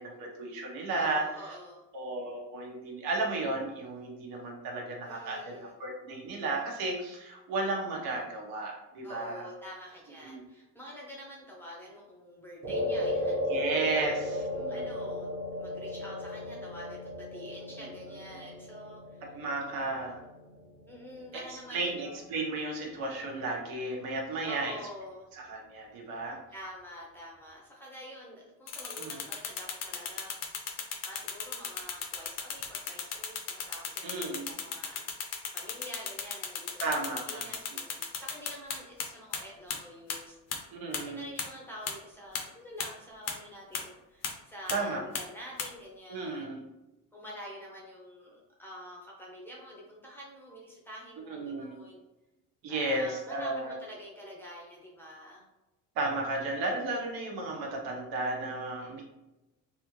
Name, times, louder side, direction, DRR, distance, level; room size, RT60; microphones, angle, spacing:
voice 1, 0.0-1.2 1.9-9.5 10.2-10.4 13.5-14.1 14.5-14.9 19.3-20.2 21.7-24.7 25.5-26.4 29.0-29.2 34.0-34.6 36.8-37.5 40.7-41.2 44.7-45.0 46.1-46.6 51.3-51.8 52.6-53.8 55.9-59.0, right 2 dB, 70° right, -1 dB, 1.1 m, -34 dB
voice 2, 1.0-1.8 5.0-5.7 9.0-13.4 13.8-15.3 15.6-19.3 20.9-22.2 24.4-25.3 26.5-30.3 30.7-40.4 40.9-46.5 47.1-52.0 52.7-55.4, equal, 5° left, -4 dB, 0.6 m, -47 dB
sound 1, 12.6-21.1, left 1 dB, 35° right, 1.1 m, -35 dB
sound 2, 28.7-39.0 39.3-39.4 39.7-39.8 40.1-40.2 40.5-40.6 40.9-41.0 41.4-41.5 41.9-42.0 42.3-42.4 42.8-42.9 43.3-43.4 43.7-43.8 44.2-44.3 44.7-44.8 45.1-45.2 45.6-45.7, left 7 dB, 45° left, 0.6 m, -34 dB
3.4 x 2.5 x 3.0 m, 0.98 s
cardioid pair, 155°, 36 cm